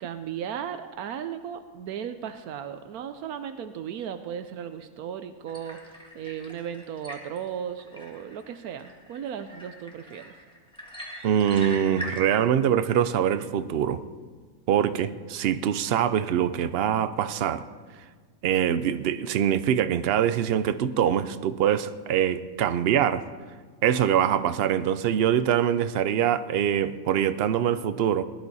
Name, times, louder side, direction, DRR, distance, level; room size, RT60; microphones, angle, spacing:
voice 1, 0.0-10.3, right 8 dB, 80° right, 1.1 m, -36 dB
sound 1, 5.5-12.3, equal, 5° left, 1.8 m, -42 dB
voice 2, 11.2-14.0 14.7-17.6 18.4-23.3 23.8-28.2, right 9 dB, 60° right, 0.6 m, -24 dB
19.0 x 11.5 x 4.1 m
omnidirectional pair, 1.5 m